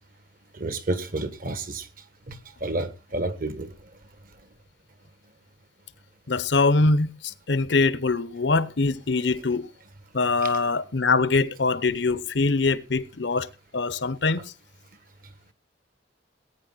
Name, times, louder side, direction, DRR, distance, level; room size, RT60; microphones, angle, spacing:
voice 1, 0.5-1.9 2.3-3.7 10.4-10.5, right 2 dB, 50° right, 1.5 m, -30 dB
voice 2, 6.3-9.7 10.1-14.5, left 3 dB, 75° left, 0.9 m, -23 dB
18.5 x 9.5 x 4.0 m
head